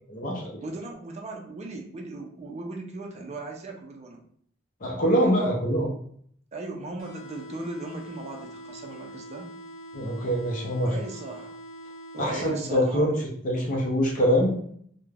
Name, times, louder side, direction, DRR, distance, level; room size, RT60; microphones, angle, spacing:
voice 1, 0.1-0.5 4.8-5.9 9.9-10.9 12.2-13.1 13.4-14.6, equal, 45° left, -2 dB, 0.5 m, -24 dB
voice 2, 0.6-4.2 6.5-9.5 10.8-11.6 12.1-13.3, right 2 dB, 35° right, 2 dB, 0.4 m, -37 dB
sound 1, 7.0-13.0, right 1 dB, 90° left, 0.5 m, -44 dB
2.3 x 2.1 x 3.2 m, 0.63 s
head